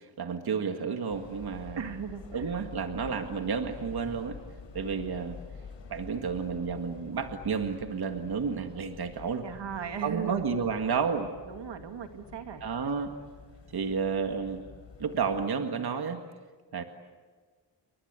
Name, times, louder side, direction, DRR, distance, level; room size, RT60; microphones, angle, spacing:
voice 1, 0.0-1.8 2.3-4.4 4.7-5.4 5.9-9.5 10.0-11.3 12.6-13.1 13.7-14.6 15.0-16.2 16.7-16.8, right 5 dB, 60° right, 6 dB, 1.9 m, -31 dB
sound 1, 1.1-15.4, left 6 dB, 85° left, 4.6 m, -48 dB
voice 2, 1.8-2.5 9.4-10.4 11.5-12.6, right 7 dB, 75° right, 7 dB, 2.3 m, -37 dB
29.5 x 23.5 x 8.2 m, 1.5 s
wide cardioid pair, 115°, 43 cm